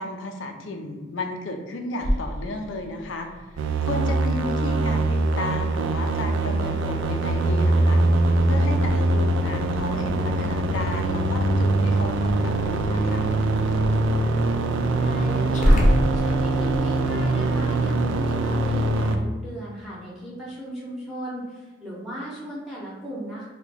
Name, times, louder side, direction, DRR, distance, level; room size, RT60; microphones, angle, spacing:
voice 1, 0.0-3.5 3.8-8.0 8.4-13.3, left 2 dB, 85° left, 4 dB, 0.5 m, -33 dB
Growling, 2.0-16.8, equal, 40° left, 0.6 m, -30 dB
sound 1, 3.6-19.2, right 2 dB, 80° right, 0.3 m, -23 dB
voice 2, 15.0-15.8 16.1-23.5, equal, 5° right, -7 dB, 0.6 m, -36 dB
2.8 x 2.2 x 4.0 m, 1.3 s
head